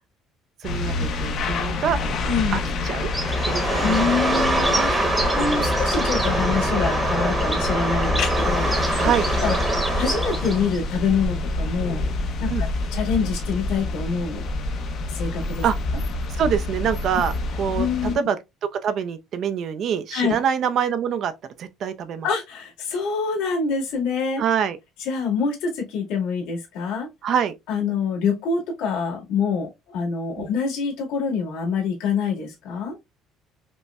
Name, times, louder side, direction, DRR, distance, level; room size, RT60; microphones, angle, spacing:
sound 1, 0.6-18.1, left 2 dB, 45° left, 0.6 m, -27 dB
voice 1, 0.6-2.0 2.5-3.1 3.5-4.7 9.0-9.2 12.5-12.6 15.6-15.8 16.3-17.3 17.6-17.9 18.1-18.4 18.8-21.3 21.6-22.3 24.4-24.8 27.2-27.5 30.4-30.5, right 8 dB, 45° right, 0.4 m, -25 dB
voice 2, 2.2-2.6 3.8-8.7 9.4-9.6 10.0-12.0 12.4-14.4 15.1-15.6 17.1-17.2 17.7-18.2 20.1-20.4 22.2-24.4 25.0-27.1 27.7-33.0, left 5 dB, 85° left, 1.9 m, -26 dB
Bird, 3.0-10.8, right 1 dB, 10° right, 0.9 m, -24 dB
5.2 x 2.1 x 2.3 m
cardioid pair, 170°, 0 cm